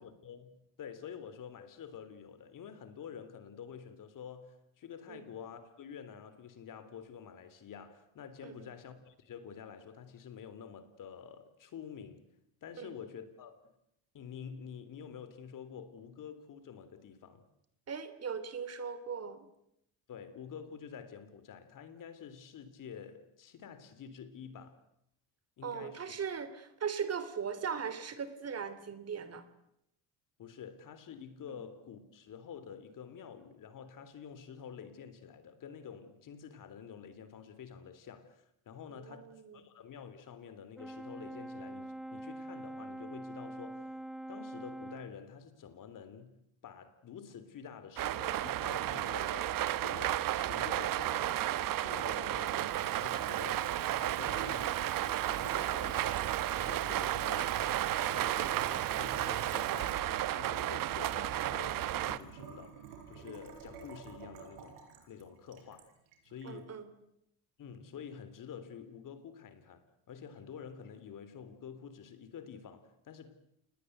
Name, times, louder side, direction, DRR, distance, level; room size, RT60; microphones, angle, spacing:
voice 1, 0.0-12.3 12.6-13.7 14.1-17.4 20.1-24.8 25.6-26.2 30.4-44.0 44.3-46.4 46.6-49.5 49.8-60.0 60.3-62.8 63.1-65.9 66.2-66.8 67.6-73.4, left 7 dB, 50° left, 3.5 m, -48 dB
voice 2, 17.9-19.5 25.6-29.4 31.5-31.6 38.9-39.7 52.2-52.4 60.8-60.9 66.4-66.9, right 6 dB, 40° right, 3.0 m, -39 dB
Brass instrument, 40.8-45.2, right 1 dB, ahead, 1.1 m, -44 dB
sound 1, 48.0-62.2, right 13 dB, 55° right, 1.2 m, -33 dB
Water tap faucet / Sink (filling or washing) / Trickle dribble, 52.4-66.5, right 7 dB, 85° right, 5.8 m, -49 dB
28.5 x 20.0 x 8.0 m
cardioid pair, 100°, 39 cm